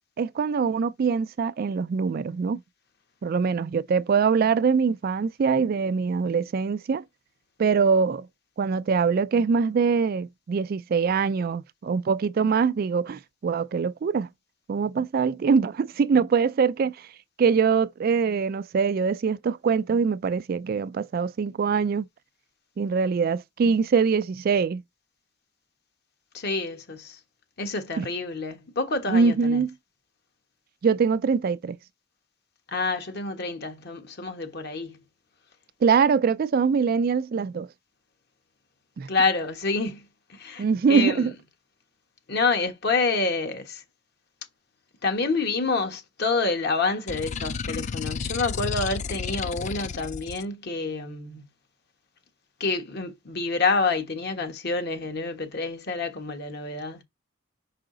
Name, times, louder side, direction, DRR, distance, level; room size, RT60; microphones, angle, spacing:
voice 1, 0.2-2.6 3.2-7.0 7.6-8.3 8.6-14.3 14.7-17.0 17.4-22.1 22.8-24.8 28.0-28.1 29.1-29.7 30.8-31.8 35.8-37.7 39.0-39.1 40.6-41.3, right 5 dB, 50° right, 0.3 m, -23 dB
voice 2, 26.3-27.2 27.6-29.6 32.7-35.0 39.1-40.0 40.3-41.3 42.3-43.8 45.0-51.4 52.6-57.0, left 3 dB, 55° left, 1.3 m, -28 dB
sound 1, 47.1-50.4, left 6 dB, 35° left, 0.3 m, -32 dB
5.6 x 4.9 x 3.8 m
head